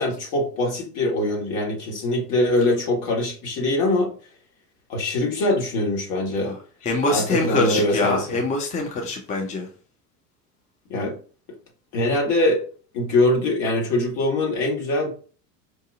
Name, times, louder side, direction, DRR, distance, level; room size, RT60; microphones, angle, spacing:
voice 1, 0.0-4.1 4.9-6.5 7.1-8.4 10.9-11.2 11.9-12.7 12.9-15.1, left 1 dB, 50° left, 1.8 m, -23 dB
voice 2, 6.4-9.7, left 2 dB, 15° left, 0.5 m, -24 dB
4.9 x 2.6 x 2.4 m
figure-of-eight pair, 85°, 49 cm